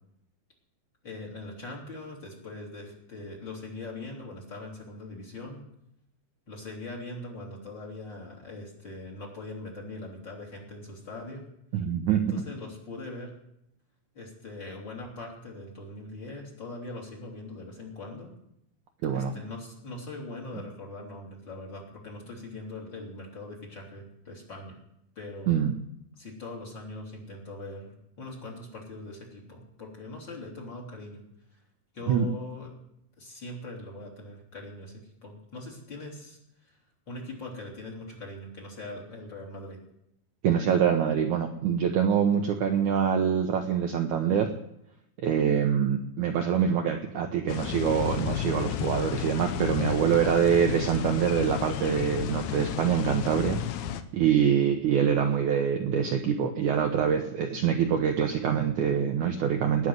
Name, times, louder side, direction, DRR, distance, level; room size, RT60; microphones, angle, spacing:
voice 1, 1.0-5.6 6.5-11.4 12.1-13.3 14.1-18.3 19.1-24.8 25.2-25.5 26.2-31.2 31.5-31.6 31.9-32.7 33.2-36.4 36.6-36.8 37.1-39.8, left 2 dB, 30° left, 0 dB, 3.7 m, -41 dB
voice 2, 11.7-12.4 19.0-19.3 25.5-25.7 32.1-32.3 40.4-44.5 45.2-53.6 54.1-59.9, right 8 dB, 70° right, 3 dB, 2.0 m, -25 dB
sound 1, 47.5-54.0, left 10 dB, 80° left, 2.6 m, -32 dB
19.5 x 6.6 x 9.7 m, 0.78 s
omnidirectional pair, 4.6 m